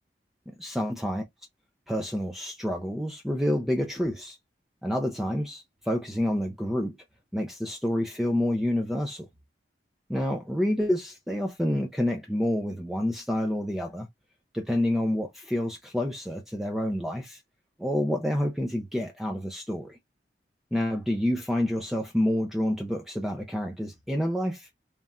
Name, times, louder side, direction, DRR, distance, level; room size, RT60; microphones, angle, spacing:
voice 1, 0.6-1.2 1.9-4.4 4.8-7.0 7.3-9.3 10.1-14.1 14.5-17.4 17.8-20.0 20.7-24.7, left 1 dB, ahead, 0.5 m, -28 dB
3.5 x 2.5 x 4.1 m
head